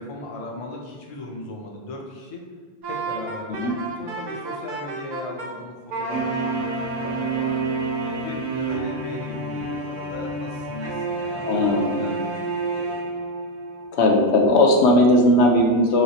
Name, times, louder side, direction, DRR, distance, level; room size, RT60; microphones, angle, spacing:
voice 1, 0.0-2.5 2.9-3.7 4.0-7.6 8.0-13.1, left 1 dB, 45° left, -1 dB, 0.4 m, -37 dB
Wind instrument woodwind instrument, 2.8-5.5 5.9-8.3, right 1 dB, 50° right, 0.6 m, -32 dB
sound 1, 6.1-13.8, right 3 dB, 85° right, 0.9 m, -29 dB
voice 2, 11.5-12.0 13.9-16.0, left 1 dB, 75° left, 1 dB, 0.9 m, -17 dB
3.1 x 3.1 x 2.8 m, 1.4 s
omnidirectional pair, 1.1 m